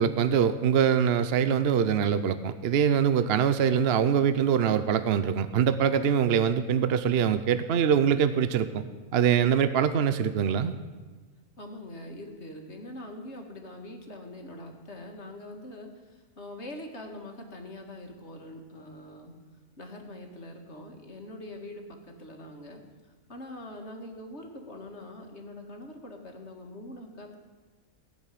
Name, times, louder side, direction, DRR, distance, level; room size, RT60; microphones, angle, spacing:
voice 1, 0.0-8.8 9.1-10.7, right 8 dB, 55° right, 12 dB, 0.7 m, -24 dB
voice 2, 11.6-19.3 19.8-22.8 23.3-27.4, left 1 dB, 45° left, 3 dB, 2.1 m, -43 dB
17.5 x 7.3 x 9.9 m, 1.4 s
omnidirectional pair, 1.6 m